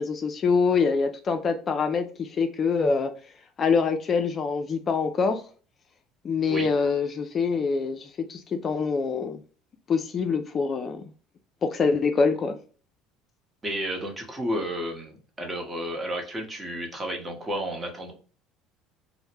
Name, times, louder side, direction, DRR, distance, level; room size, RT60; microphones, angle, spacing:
voice 1, 0.0-3.1 3.6-5.4 6.2-9.4 9.9-11.0 11.6-12.6, left 5 dB, 40° left, 0.3 m, -25 dB
voice 2, 13.6-18.1, equal, 20° right, 0.9 m, -32 dB
2.1 x 2.0 x 3.1 m
hypercardioid pair, 75°, 0 cm